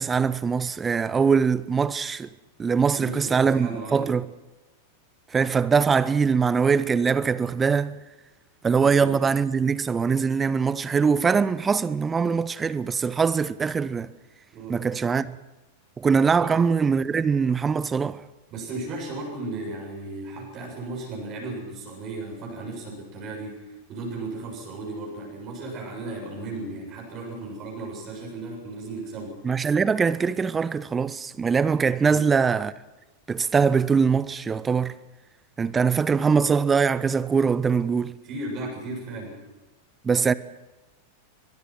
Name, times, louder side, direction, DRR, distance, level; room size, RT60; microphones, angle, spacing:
voice 1, 0.0-2.3 2.6-4.3 5.3-8.0 8.6-14.1 14.7-15.4 16.0-18.2 29.4-32.7 33.3-35.0 35.6-38.2 40.0-40.3, right 5 dB, 15° right, 0.7 m, -22 dB
voice 2, 3.0-4.0 14.5-14.8 16.4-16.5 18.5-29.4 32.1-32.2 38.2-39.4, right 2 dB, 35° right, 7.4 m, -35 dB
23.0 x 21.5 x 6.2 m
figure-of-eight pair, 90°, 0 cm